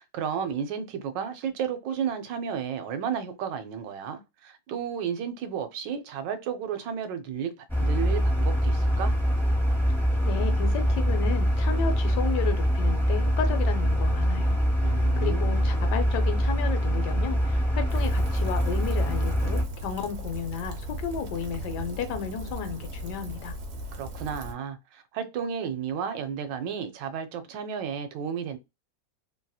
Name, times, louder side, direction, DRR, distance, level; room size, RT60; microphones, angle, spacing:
voice 1, 0.0-9.1 14.8-15.8 23.9-28.6, right 7 dB, 85° right, 1.3 m, -33 dB
sound 1, 7.7-19.6, equal, ahead, 0.5 m, -24 dB
voice 2, 10.2-23.6, left 7 dB, 75° left, 1.2 m, -33 dB
Rain, 17.9-24.5, equal, 60° right, 0.9 m, -38 dB
3.1 x 2.7 x 2.2 m
omnidirectional pair, 1.9 m